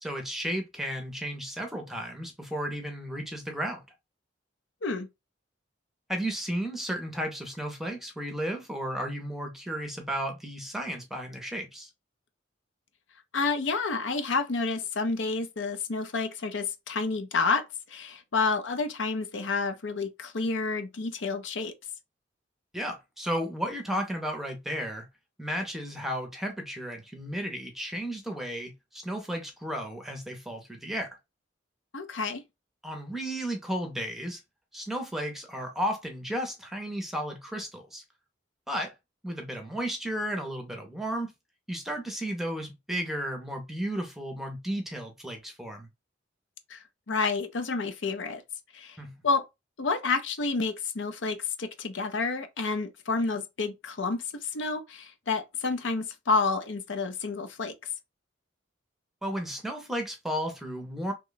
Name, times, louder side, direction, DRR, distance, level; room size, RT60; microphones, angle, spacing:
voice 1, 0.0-3.8 6.1-11.9 22.7-25.1 25.4-31.1 32.8-34.4 34.7-38.0 38.7-38.9 39.2-41.3 41.7-45.9 49.0-49.1 59.2-61.1, equal, ahead, 0.6 m, -33 dB
voice 2, 13.3-21.7 31.9-32.4 46.7-48.4 48.7-49.0 49.2-49.4 49.8-57.7, left 4 dB, 75° left, 0.6 m, -29 dB
3.0 x 2.2 x 3.8 m
head